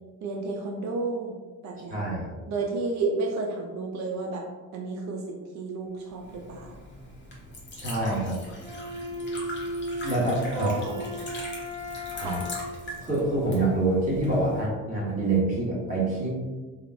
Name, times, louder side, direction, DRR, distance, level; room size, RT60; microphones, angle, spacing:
voice 1, 0.2-1.4 1.6-2.0 2.5-4.5 4.7-6.8 10.5-11.1 12.2-12.4, right 3 dB, 45° right, 1 dB, 0.4 m, -31 dB
voice 2, 1.9-2.3 7.8-8.4 10.0-10.7 12.1-12.4 13.0-16.3, right 2 dB, 20° right, -5 dB, 1.4 m, -26 dB
Liquid, 6.1-14.6, left 1 dB, 25° left, 0.8 m, -42 dB
Bowed string instrument, 8.6-12.9, equal, 10° left, 1.3 m, -35 dB
2.9 x 2.0 x 2.5 m, 1.3 s
figure-of-eight pair, 55°, 43 cm